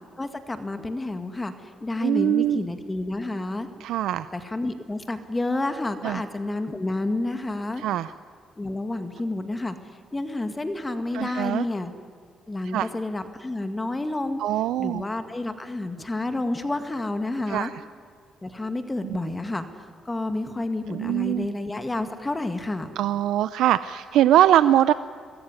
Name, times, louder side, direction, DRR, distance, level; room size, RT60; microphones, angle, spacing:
voice 1, 0.2-3.7 4.3-7.8 8.6-9.8 10.1-11.9 12.5-14.4 14.8-17.7 18.4-19.7 20.1-22.9, left 2 dB, 20° left, 8 dB, 1.8 m, -29 dB
voice 2, 2.0-2.6 3.8-4.3 6.0-6.2 7.8-8.1 11.1-11.6 12.7-12.9 14.4-15.0 17.5-17.7 19.0-19.2 20.9-21.5 23.0-24.9, right 12 dB, 85° right, 14 dB, 0.5 m, -22 dB
23.5 x 20.5 x 9.7 m, 2.2 s
cardioid pair, 90°, 0 cm